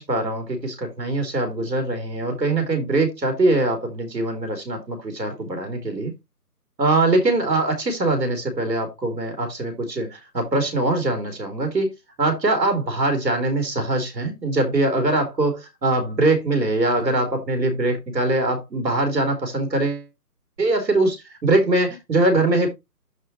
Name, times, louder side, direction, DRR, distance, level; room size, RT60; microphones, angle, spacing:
voice 1, 0.0-6.1 6.8-11.9 12.2-20.1 20.6-21.2 21.4-22.7, right 2 dB, 80° right, 4.3 m, -22 dB
11.5 x 5.0 x 3.0 m
hypercardioid pair, 175°, 50 cm